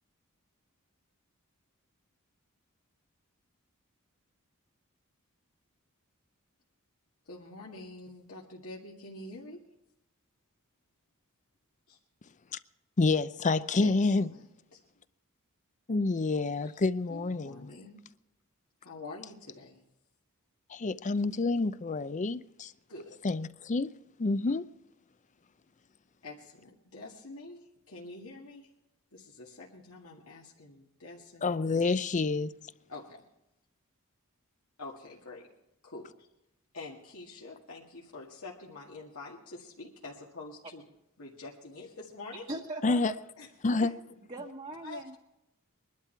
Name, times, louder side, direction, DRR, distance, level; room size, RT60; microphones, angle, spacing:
voice 1, 7.3-9.6 11.9-12.0 13.8-14.8 16.6-16.8 17.1-18.0 18.8-19.8 22.9-23.2 26.2-28.7 29.1-31.6 32.9-33.3 34.8-35.5 35.8-36.3 36.7-40.8 41.2-42.5 43.4-43.5 43.8-43.9 44.8-45.0, left 2 dB, 80° left, 2.0 m, -46 dB
voice 2, 13.0-14.3 15.9-17.6 20.7-22.7 23.2-23.9 24.2-24.7 31.4-32.5 42.8-43.1 43.6-43.9, left 3 dB, 35° left, 0.5 m, -28 dB
voice 3, 42.5-43.2 43.8-43.9 44.3-45.2, right 1 dB, 30° right, 1.3 m, -40 dB
21.5 x 12.0 x 4.5 m
head